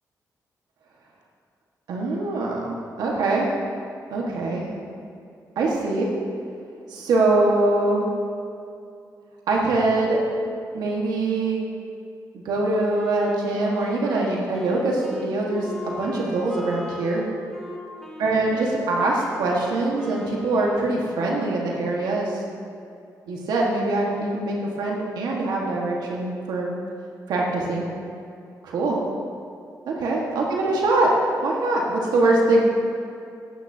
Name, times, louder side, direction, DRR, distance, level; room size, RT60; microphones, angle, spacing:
voice 1, 1.9-3.5 4.1-4.7 5.5-6.1 6.9-8.1 9.5-10.2 10.7-11.6 12.4-17.2 18.2-22.4 23.3-26.7 27.3-27.9 28.6-29.0 29.9-31.1 31.4-32.6, right 2 dB, 85° right, -2 dB, 1.5 m, -23 dB
Wind instrument woodwind instrument, 12.9-21.3, left 1 dB, 5° left, 1.9 m, -39 dB
17.5 x 8.8 x 2.8 m, 2.5 s
cardioid pair, 80°, 7 cm